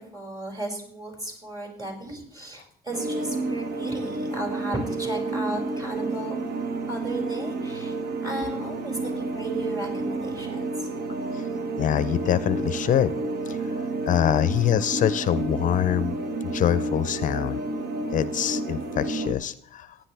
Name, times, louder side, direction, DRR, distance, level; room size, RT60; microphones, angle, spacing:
voice 1, 0.0-6.3 6.9-10.9, right 1 dB, 25° right, 2 dB, 5.2 m, -35 dB
sound 1, 2.9-19.3, right 2 dB, 65° right, 1.4 m, -30 dB
voice 2, 11.8-13.1 13.5-13.6 14.1-16.1 16.5-17.6 18.1-20.0, left 10 dB, 50° left, 14 dB, 0.5 m, -24 dB
15.5 x 10.5 x 3.3 m, 0.64 s
cardioid pair, 110°, 17 cm